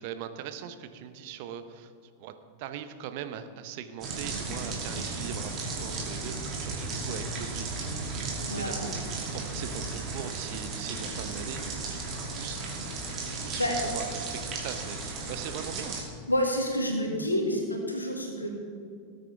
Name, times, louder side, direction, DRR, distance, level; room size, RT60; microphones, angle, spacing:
voice 1, 0.0-1.9 2.2-2.3 2.6-13.0 13.2-16.0, right 9 dB, 50° right, 10 dB, 0.8 m, -41 dB
sound 1, 4.0-16.0, right 3 dB, 30° right, 2.6 m, -35 dB
voice 2, 8.5-8.9 13.6-13.8 16.3-18.5, equal, 85° left, 0 dB, 2.1 m, -28 dB
18.5 x 9.0 x 3.5 m, 2.3 s
figure-of-eight pair, 90°, 0 cm